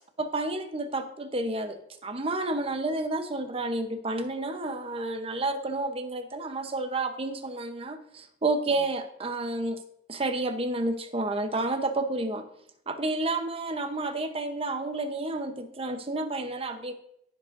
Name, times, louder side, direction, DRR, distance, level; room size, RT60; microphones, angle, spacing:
voice 1, 0.2-1.8 2.0-9.8 10.1-12.4 12.9-16.9, right 2 dB, 30° right, 6 dB, 0.8 m, -30 dB
15.5 x 5.1 x 2.6 m, 0.71 s
head